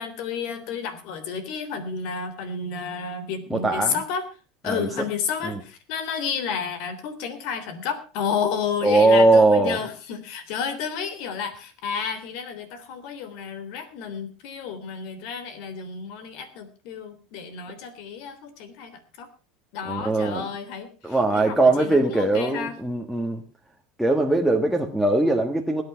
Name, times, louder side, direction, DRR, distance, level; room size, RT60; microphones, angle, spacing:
voice 1, 0.0-4.2 4.6-19.3 19.7-22.7, left 6 dB, 65° left, 12 dB, 3.3 m, -31 dB
voice 2, 3.5-4.0 4.7-4.9 5.4-5.6 8.8-9.8 19.8-20.4 21.0-23.4 24.0-25.8, right 2 dB, ahead, 0 dB, 1.5 m, -20 dB
19.5 x 8.7 x 5.7 m, 0.35 s
supercardioid pair, 135°, 0 cm